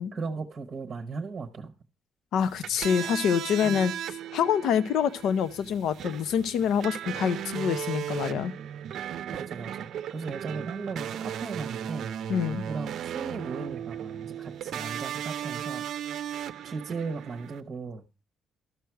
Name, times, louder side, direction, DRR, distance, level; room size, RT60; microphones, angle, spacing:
voice 1, 0.1-1.7 3.6-3.8 9.3-12.1 12.7-15.8 16.6-18.1, right 4 dB, 30° right, 0.9 m, -36 dB
voice 2, 2.3-8.5 12.3-12.6, left 8 dB, 75° left, 0.7 m, -26 dB
sound 1, 2.4-17.6, right 10 dB, 65° right, 0.6 m, -36 dB
12.5 x 6.4 x 4.6 m
cardioid pair, 155°, 0 cm